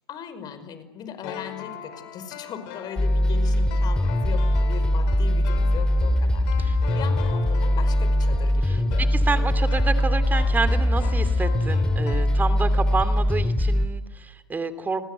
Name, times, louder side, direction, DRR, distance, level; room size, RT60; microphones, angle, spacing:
voice 1, 0.1-9.1, left 8 dB, 35° left, 11 dB, 5.4 m, -39 dB
sound 1, 1.2-12.9 13.1-13.2, left 9 dB, 55° left, 7.7 m, -40 dB
sound 2, 3.0-13.9, left 1 dB, 5° left, 2.4 m, -21 dB
voice 2, 8.6-15.0, right 4 dB, 15° right, 12 dB, 2.8 m, -29 dB
30.0 x 20.0 x 8.1 m, 1.1 s
hypercardioid pair, 115°, 12 cm